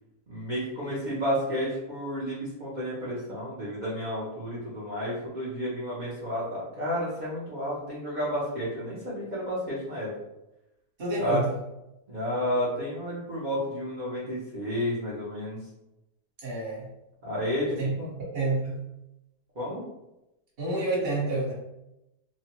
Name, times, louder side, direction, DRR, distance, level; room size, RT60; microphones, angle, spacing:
voice 1, 0.3-10.1 11.2-11.4 12.1-15.6 17.2-18.2 19.5-19.9, equal, 65° right, -7 dB, 0.4 m, -31 dB
voice 2, 11.0-11.5 16.4-16.9 17.8-17.9 18.3-18.8 20.6-21.5, right 2 dB, 40° right, -6 dB, 1.1 m, -28 dB
3.0 x 2.1 x 2.8 m, 0.92 s
omnidirectional pair, 1.8 m